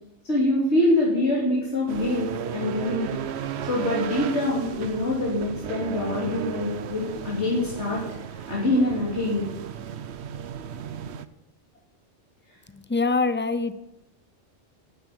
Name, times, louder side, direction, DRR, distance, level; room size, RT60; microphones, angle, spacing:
voice 1, 0.2-3.1 3.6-8.0 8.5-9.5, left 1 dB, 70° left, -5 dB, 3.2 m, -25 dB
sound 1, 1.9-11.3, right 8 dB, 70° right, 1.0 m, -34 dB
voice 2, 12.7-13.8, left 3 dB, 10° left, 12 dB, 0.6 m, -24 dB
11.0 x 7.7 x 9.9 m, 0.86 s
omnidirectional pair, 1.2 m